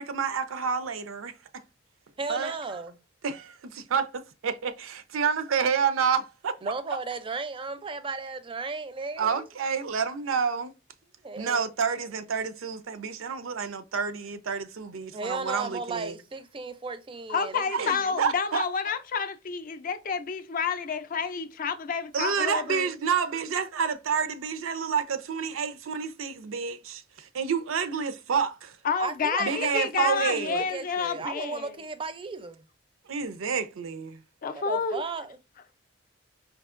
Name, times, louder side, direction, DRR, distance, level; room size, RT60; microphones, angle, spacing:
voice 1, 0.0-1.4 2.3-2.5 3.2-6.6 9.2-10.7 11.4-16.1 17.7-18.6 22.1-28.8 29.4-30.6 33.1-34.2, right 6 dB, 90° right, 0.5 m, -29 dB
voice 2, 2.2-3.0 6.6-9.5 11.2-12.0 15.1-18.1 29.0-32.6 34.5-35.4, right 4 dB, 25° right, 0.4 m, -35 dB
voice 3, 17.3-22.9 28.8-31.7 34.4-35.0, left 5 dB, 45° left, 0.4 m, -29 dB
4.6 x 2.7 x 2.4 m
head